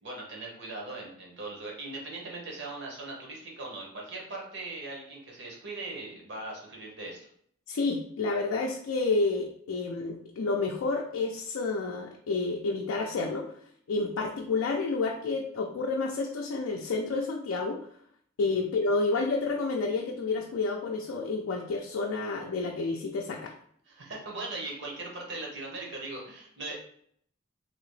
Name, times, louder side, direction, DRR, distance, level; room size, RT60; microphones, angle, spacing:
voice 1, 0.0-7.3 18.5-18.6 23.9-26.7, right 2 dB, 55° right, -1 dB, 1.0 m, -39 dB
voice 2, 7.7-13.5 13.9-17.9 18.4-23.5, left 3 dB, 80° left, 0 dB, 0.4 m, -30 dB
3.0 x 2.8 x 3.1 m, 0.64 s
head